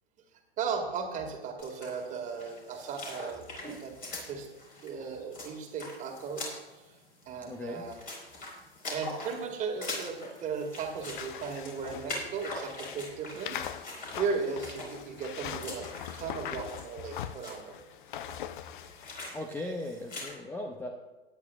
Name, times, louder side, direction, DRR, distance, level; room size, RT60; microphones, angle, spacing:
voice 1, 0.6-3.9 4.2-4.5 4.8-6.9 7.3-8.0 8.9-13.9 14.2-15.9 16.1-17.7, right 5 dB, 25° right, 3 dB, 2.0 m, -36 dB
sound 1, 1.6-20.3, left 2 dB, 25° left, 4.1 m, -43 dB
voice 2, 7.4-7.9 19.3-20.9, left 1 dB, 5° left, 3 dB, 0.6 m, -38 dB
sound 2, 11.0-19.3, left 10 dB, 50° left, 0.6 m, -42 dB
17.5 x 10.0 x 2.4 m, 1.2 s
figure-of-eight pair, 105°, 31 cm